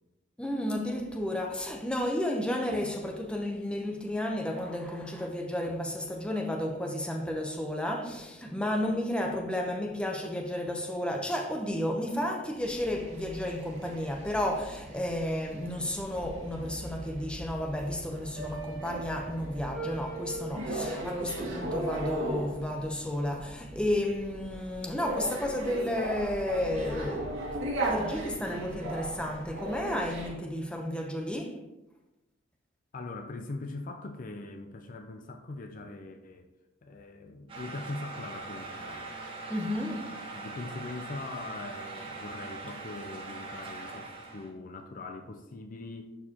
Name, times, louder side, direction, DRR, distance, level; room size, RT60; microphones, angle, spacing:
voice 1, 0.4-27.3 27.8-31.6 39.5-40.1, left 1 dB, 5° left, 0.7 m, -32 dB
sound 1, 12.6-30.3, right 1 dB, 75° right, 1.9 m, -37 dB
voice 2, 32.9-36.5 36.8-39.1 40.3-46.1, left 2 dB, 45° left, 0.5 m, -41 dB
sound 2, 37.5-44.5, right 3 dB, 25° right, 1.3 m, -41 dB
11.0 x 4.7 x 2.9 m
head